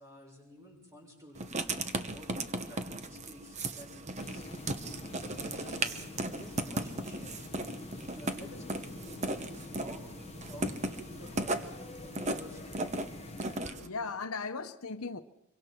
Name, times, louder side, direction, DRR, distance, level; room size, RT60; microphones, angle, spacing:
voice 1, 0.0-1.6 2.0-2.3 2.7-4.6 5.4-5.9 6.3-7.4 8.1-10.2 10.5-11.7 12.0-12.8, left 1 dB, 15° right, 6.6 m, -51 dB
Writing, 1.4-13.9, right 2 dB, 30° right, 1.0 m, -37 dB
sound 1, 4.2-13.6, left 2 dB, 30° left, 0.7 m, -46 dB
voice 2, 13.3-15.2, left 4 dB, 75° left, 0.9 m, -38 dB
25.0 x 23.5 x 4.5 m
head